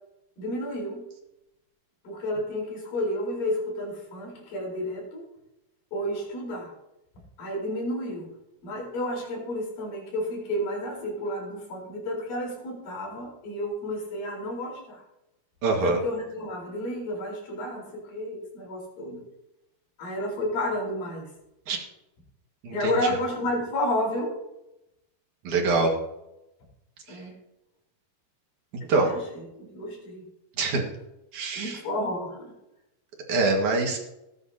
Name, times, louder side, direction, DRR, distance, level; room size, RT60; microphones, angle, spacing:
voice 1, 0.4-1.0 2.0-5.3 5.9-6.7 7.4-8.3 8.6-15.0 15.7-19.2 20.0-21.3 22.7-24.4 27.1-27.3 28.8-30.3 31.6-32.5, left 1 dB, 65° left, -2 dB, 6.1 m, -31 dB
voice 2, 15.6-16.0 21.7-21.8 22.6-22.9 25.4-25.9 28.9-29.1 30.6-30.8 31.3-31.8 33.3-34.0, right 3 dB, 60° right, 1 dB, 3.1 m, -24 dB
19.0 x 10.5 x 2.9 m, 0.90 s
omnidirectional pair, 4.3 m